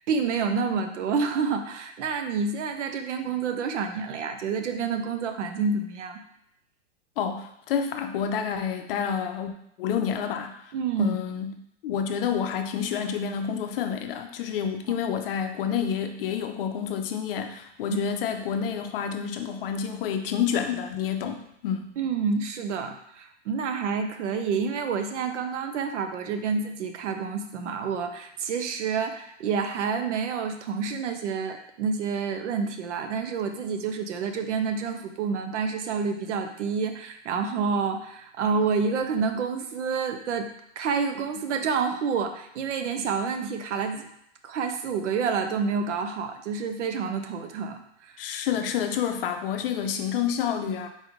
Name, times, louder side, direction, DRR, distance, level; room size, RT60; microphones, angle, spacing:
voice 1, 0.1-6.2 10.7-11.2 17.9-18.0 22.0-40.5 40.8-44.1 44.4-48.1, right 5 dB, 80° right, 6 dB, 0.7 m, -28 dB
voice 2, 7.2-9.5 9.8-10.6 11.0-11.5 11.8-21.9 48.2-50.9, left 8 dB, 50° left, 6 dB, 0.5 m, -29 dB
4.0 x 3.2 x 3.6 m, 0.74 s
supercardioid pair, 155°, 36 cm